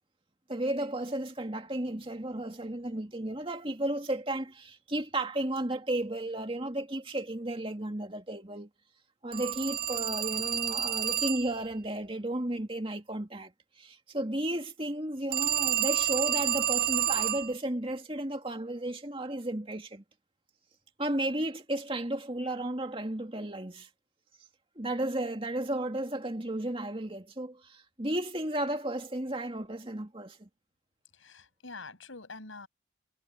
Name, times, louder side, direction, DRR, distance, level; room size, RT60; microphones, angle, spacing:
voice 1, 0.5-8.7 9.2-13.5 13.8-20.0 21.0-23.9 24.8-30.5, right 1 dB, 25° right, 2.4 m, -33 dB
Telephone, 9.3-11.6 15.3-17.5, right 11 dB, 50° right, 0.9 m, -29 dB
voice 2, 31.1-32.7, left 3 dB, 90° left, 6.8 m, -45 dB
head